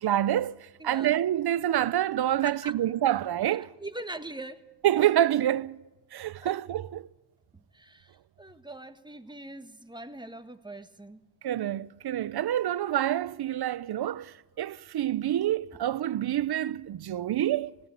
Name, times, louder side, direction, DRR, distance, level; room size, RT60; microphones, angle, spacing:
voice 1, 0.0-3.7 4.8-5.8 6.1-7.1 11.4-17.7, right 12 dB, 70° right, 0.7 m, -27 dB
voice 2, 0.8-1.1 2.4-2.7 3.8-4.6 6.4-6.5 7.7-11.2, right 2 dB, 10° right, 1.5 m, -41 dB
20.5 x 15.5 x 8.1 m
cardioid pair, 65°, 40 cm